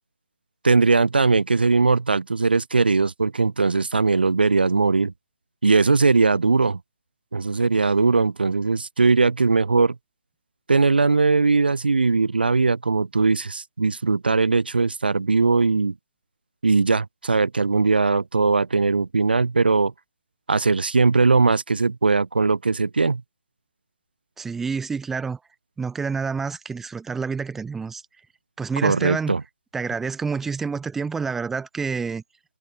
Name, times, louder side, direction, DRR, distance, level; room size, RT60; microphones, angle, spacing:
voice 1, 0.6-5.1 5.6-6.8 7.3-10.0 10.7-15.9 16.6-19.9 20.5-23.2 28.8-29.4, right 4 dB, 65° right, 0.6 m, -20 dB
voice 2, 24.4-25.4 25.8-28.0 28.6-29.3 29.7-32.2, right 5 dB, 5° right, 0.8 m, -28 dB
figure-of-eight pair, 145°, 6 cm